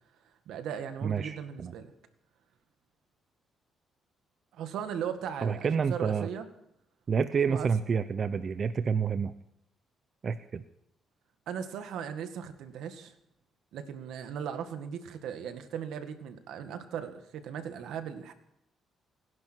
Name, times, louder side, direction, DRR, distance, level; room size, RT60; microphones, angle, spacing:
voice 1, 0.5-1.9 4.5-6.5 7.5-7.7 11.5-13.1 13.7-18.3, right 8 dB, 80° right, 8 dB, 1.9 m, -38 dB
voice 2, 1.0-1.7 5.4-6.3 7.1-9.3 10.2-10.6, right 6 dB, 45° right, 12 dB, 0.7 m, -29 dB
28.5 x 11.0 x 4.6 m, 0.77 s
cardioid pair, 90°, 0 cm